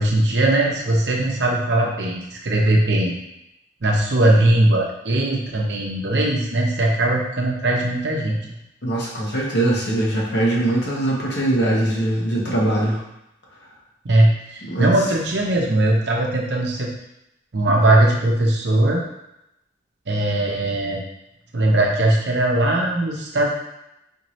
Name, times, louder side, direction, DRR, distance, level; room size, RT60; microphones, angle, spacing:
voice 1, 0.0-3.1 3.8-8.6 14.0-16.9 17.5-19.0 20.1-21.0 21.5-23.5, right 1 dB, 60° right, -1 dB, 0.7 m, -19 dB
voice 2, 8.8-13.0 14.6-14.9, right 1 dB, 60° left, -3 dB, 1.0 m, -21 dB
4.4 x 2.8 x 3.1 m, 0.85 s
head